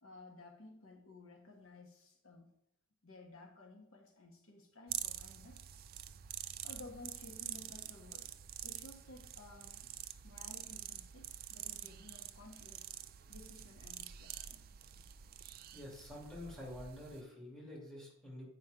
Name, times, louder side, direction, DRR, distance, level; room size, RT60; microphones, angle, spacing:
voice 1, 0.0-2.5 3.0-5.6 6.6-8.3 8.6-9.8 10.2-12.9 13.3-14.6, left 2 dB, 70° left, 2 dB, 1.2 m, -55 dB
sound 1, 4.9-17.2, right 11 dB, 40° right, 0.3 m, -47 dB
voice 2, 15.7-18.5, left 1 dB, 5° left, -4 dB, 2.5 m, -48 dB
8.2 x 5.1 x 5.0 m, 0.80 s
head